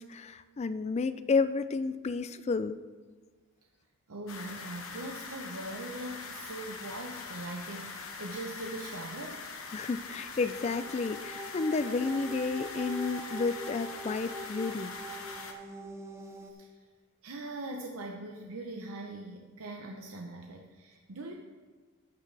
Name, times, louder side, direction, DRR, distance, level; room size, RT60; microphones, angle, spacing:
voice 1, 0.0-2.8 9.7-15.0, left 4 dB, 30° left, 13 dB, 0.3 m, -31 dB
voice 2, 4.1-9.4 16.4-16.7 17.2-21.3, right 2 dB, 75° right, 1 dB, 0.8 m, -41 dB
sound 1, 4.3-15.5, left 4 dB, 65° left, 1.1 m, -43 dB
sound 2, 10.4-16.5, right 2 dB, 10° right, 0.6 m, -43 dB
12.0 x 9.0 x 3.3 m, 1.4 s
head